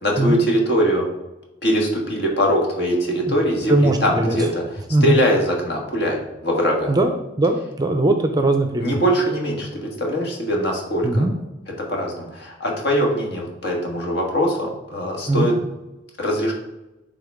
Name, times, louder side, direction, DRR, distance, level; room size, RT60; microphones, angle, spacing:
voice 1, 0.0-1.0 1.6-7.0 8.8-11.3 11.9-15.5 16.2-16.5, equal, 55° left, 0 dB, 1.6 m, -22 dB
voice 2, 3.7-4.4 4.9-5.2 6.9-7.1 7.4-8.9 11.0-11.3 15.3-15.5, right 2 dB, 20° right, 6 dB, 0.5 m, -19 dB
10.5 x 3.8 x 3.6 m, 0.98 s
head